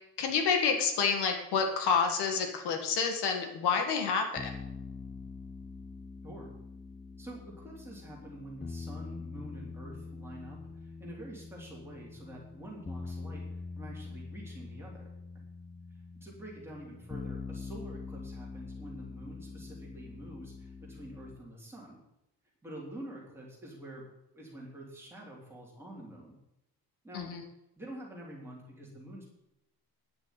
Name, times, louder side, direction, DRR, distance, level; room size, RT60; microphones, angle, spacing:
voice 1, 0.2-4.5 27.1-27.4, left 5 dB, 85° left, 4 dB, 2.2 m, -29 dB
sound 1, 4.4-21.4, left 4 dB, 15° left, 0.6 m, -44 dB
voice 2, 7.2-13.4 13.7-15.1 16.2-22.0 22.6-24.1 24.3-26.3 27.0-27.3 27.8-29.3, right 1 dB, 5° right, -4 dB, 3.5 m, -47 dB
10.5 x 6.7 x 9.2 m, 0.85 s
cardioid pair, 175°, 39 cm